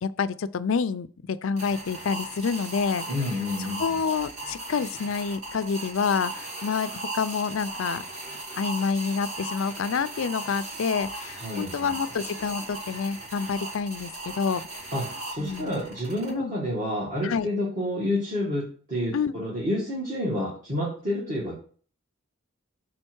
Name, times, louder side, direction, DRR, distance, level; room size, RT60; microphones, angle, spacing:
voice 1, 0.0-3.0 3.6-8.0 8.6-14.7 15.4-15.7 16.3-16.5 17.2-17.5 19.1-19.3, left 5 dB, 65° left, 0.4 m, -28 dB
sound 1, 1.6-16.3, right 2 dB, 75° right, 2.7 m, -37 dB
voice 2, 3.1-3.8 11.4-11.9 14.9-21.6, left 1 dB, 40° right, 2.0 m, -29 dB
6.2 x 4.4 x 4.5 m
head